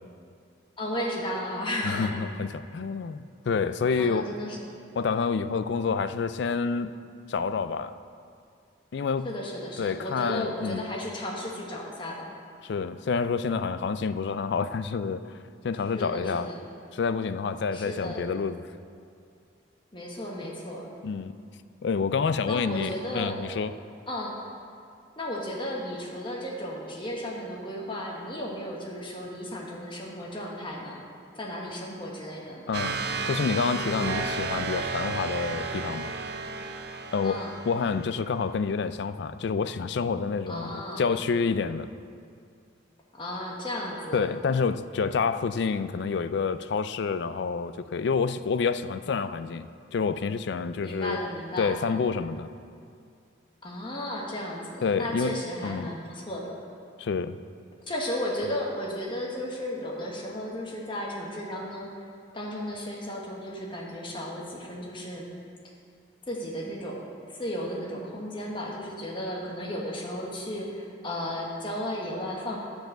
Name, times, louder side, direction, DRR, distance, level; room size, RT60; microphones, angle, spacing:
voice 1, 0.8-2.1 4.0-4.7 9.2-12.3 15.9-16.6 17.7-18.3 19.9-20.9 22.5-23.4 24.1-24.4 25.2-31.0 31.3-32.7 37.2-37.5 40.5-41.1 43.2-44.3 50.8-51.8 53.6-56.6 57.9-65.3 66.3-72.6, left 1 dB, 25° left, -2 dB, 1.3 m, -34 dB
voice 2, 1.8-4.3 5.0-7.0 7.3-8.0 8.9-9.3 9.8-10.8 12.6-15.4 15.6-16.5 16.9-18.7 21.0-21.3 21.8-23.7 32.7-36.1 37.1-41.9 44.1-51.2 51.6-52.5 54.8-55.9 57.0-57.4, left 5 dB, 60° left, 12 dB, 0.3 m, -28 dB
sound 1, 32.7-38.3, right 4 dB, 55° right, 0.5 m, -32 dB
11.5 x 4.8 x 7.7 m, 2.3 s
head